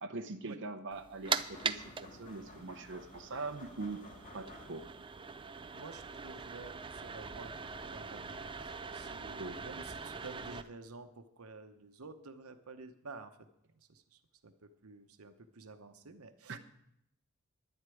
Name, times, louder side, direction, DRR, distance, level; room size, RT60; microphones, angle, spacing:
voice 1, 0.0-4.0 4.3-4.8 9.4-9.6 16.5-16.6, right 3 dB, 60° right, 6 dB, 0.9 m, -42 dB
sound 1, 0.9-10.6, right 5 dB, 25° right, 0.5 m, -42 dB
sound 2, 1.2-5.1, left 2 dB, 35° left, 2.1 m, -54 dB
voice 2, 5.7-13.4 13.7-16.6, right 3 dB, 90° right, 8 dB, 1.0 m, -51 dB
11.0 x 8.0 x 9.2 m, 0.77 s
head